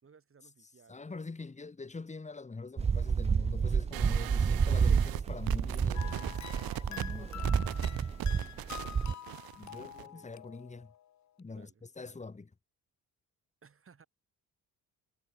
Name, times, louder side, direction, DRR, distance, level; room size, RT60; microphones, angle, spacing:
voice 1, 0.0-1.1 8.2-9.5 9.7-10.3 11.5-12.2 13.6-14.1, right 6 dB, 35° right, 6.7 m, -62 dB
voice 2, 0.9-6.4 6.9-7.5 9.5-10.9 11.4-11.7 12.0-12.5, left 3 dB, 20° left, 2.6 m, -44 dB
sound 1, 2.8-9.1, right 6 dB, 20° right, 0.3 m, -30 dB
sound 2, 3.9-10.1, right 16 dB, 75° right, 0.8 m, -40 dB
sound 3, 5.9-11.1, left 10 dB, 50° left, 1.0 m, -47 dB
cardioid pair, 110°, 36 cm